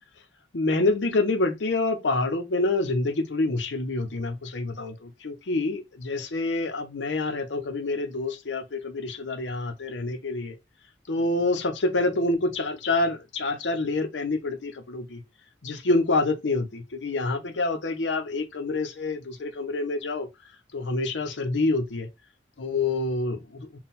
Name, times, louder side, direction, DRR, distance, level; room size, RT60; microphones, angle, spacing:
voice 1, 0.5-10.6 11.1-15.2 15.6-20.3 20.7-22.1 22.6-23.8, left 2 dB, 85° left, 0.8 m, -27 dB
3.8 x 2.3 x 4.1 m
head